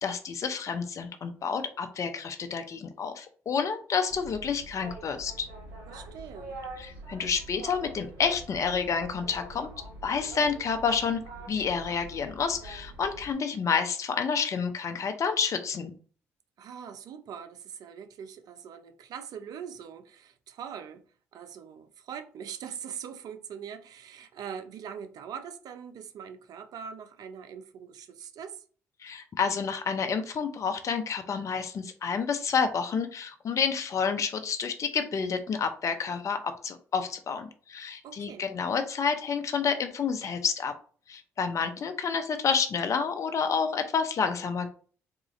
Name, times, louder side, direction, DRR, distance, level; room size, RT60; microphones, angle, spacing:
voice 1, 0.0-5.5 6.8-9.7 10.0-11.2 11.5-15.9 29.0-40.7 41.1-44.7, left 6 dB, 50° left, 0.6 m, -29 dB
Boat Water vehicle, 4.1-13.3, right 2 dB, 80° right, 1.7 m, -44 dB
voice 2, 5.9-6.6 16.6-21.0 21.3-28.6 38.0-38.5, right 7 dB, 65° right, 0.5 m, -42 dB
3.8 x 2.4 x 3.1 m
supercardioid pair, 55°, 7 cm